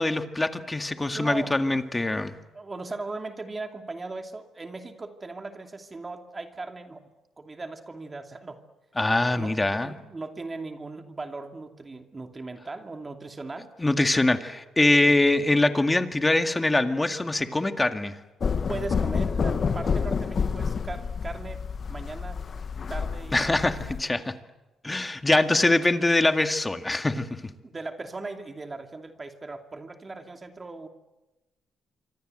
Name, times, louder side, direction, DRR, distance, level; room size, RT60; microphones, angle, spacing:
voice 1, 0.0-2.3 9.0-9.9 13.8-18.1 23.3-24.3 24.8-27.3, left 2 dB, 15° left, 7 dB, 2.1 m, -23 dB
voice 2, 1.1-1.6 2.5-7.1 7.4-8.6 9.3-13.7 15.0-15.2 18.7-22.4 22.9-23.6 27.6-30.9, right 3 dB, 25° right, 5 dB, 2.6 m, -38 dB
sound 1, 18.4-24.0, left 6 dB, 45° left, 1.5 m, -28 dB
27.0 x 25.0 x 7.9 m, 1.0 s
cardioid pair, 90°, 0 cm